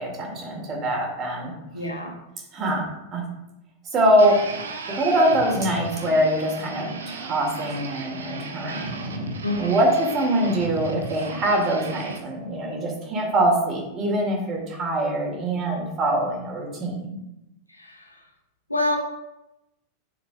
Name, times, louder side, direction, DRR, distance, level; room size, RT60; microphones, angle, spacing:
voice 1, 0.0-1.5 2.5-2.8 3.1-3.2 3.8-4.4 4.9-17.2, right 1 dB, 30° right, -1 dB, 2.2 m, -23 dB
voice 2, 1.7-2.1 9.4-9.8 17.7-18.2 18.7-19.0, left 1 dB, 85° left, 1 dB, 1.1 m, -27 dB
sound 1, 4.2-12.2, right 4 dB, 70° right, 0.8 m, -35 dB
9.2 x 6.6 x 2.3 m, 0.91 s
figure-of-eight pair, 90°, 0 cm